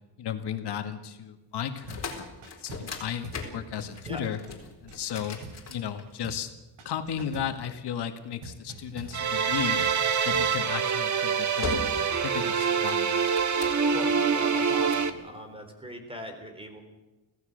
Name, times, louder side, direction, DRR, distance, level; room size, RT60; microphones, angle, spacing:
voice 1, 0.2-2.0 2.4-4.4 4.8-5.4 5.7-6.5 6.9-9.9 10.3-13.3, left 9 dB, 70° left, 6 dB, 2.0 m, -35 dB
sound 1, 1.7-6.4 7.2-8.5 10.2-10.5 11.0-11.3 11.6-12.2 12.5-14.0 14.6-15.1, left 4 dB, 40° left, 4.4 m, -39 dB
sound 2, 1.9-2.1 2.4-3.0 3.2-3.5 3.8-5.9 6.2-6.5 6.8-7.6 8.4-10.6, right 4 dB, 80° right, 4.3 m, -45 dB
sound 3, 9.1-15.1, right 6 dB, 45° right, 1.6 m, -25 dB
voice 2, 13.9-16.8, equal, 15° right, 6 dB, 3.8 m, -41 dB
25.5 x 16.5 x 6.7 m, 1.1 s
wide cardioid pair, 165°, 41 cm